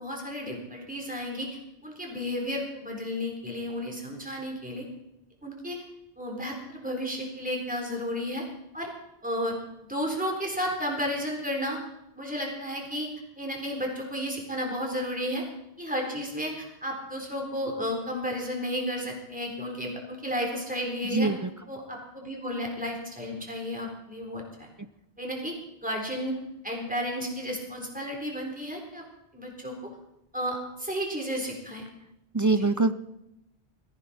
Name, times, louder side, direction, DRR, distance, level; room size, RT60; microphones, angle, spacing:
voice 1, 0.0-4.8 5.4-5.8 6.2-8.4 8.7-8.9 9.2-9.6 9.8-11.8 12.2-13.1 13.4-15.4 15.8-21.3 21.7-24.7 25.2-25.5 25.8-26.3 26.6-29.0 29.3-29.9 30.3-31.8 32.5-32.7, equal, 5° right, 0 dB, 3.7 m, -33 dB
voice 2, 21.1-21.5 32.3-32.9, right 3 dB, 25° right, 11 dB, 0.4 m, -23 dB
21.0 x 15.5 x 4.3 m, 0.86 s
omnidirectional pair, 1.1 m